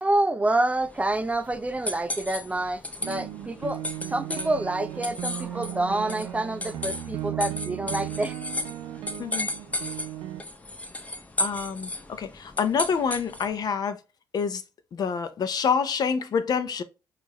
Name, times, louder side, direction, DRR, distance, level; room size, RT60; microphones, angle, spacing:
voice 1, 0.0-3.8 4.1-8.3, right 2 dB, 15° right, 0.4 m, -27 dB
sound 1, 0.8-13.6, left 1 dB, 20° left, 0.7 m, -35 dB
sound 2, 3.0-10.4, right 12 dB, 80° right, 0.6 m, -36 dB
voice 2, 11.4-14.0 14.3-14.6 14.9-16.8, left 6 dB, 55° left, 0.6 m, -27 dB
4.6 x 2.5 x 2.9 m
supercardioid pair, 65°, 8 cm